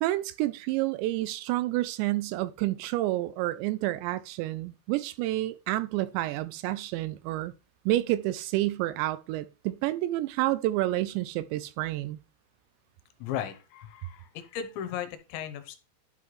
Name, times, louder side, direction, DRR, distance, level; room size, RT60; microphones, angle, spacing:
voice 1, 0.0-7.5 7.9-12.2, right 16 dB, 85° right, 2.7 m, -29 dB
voice 2, 13.2-15.8, left 9 dB, 80° left, 3.1 m, -36 dB
11.5 x 5.6 x 3.1 m
omnidirectional pair, 5.3 m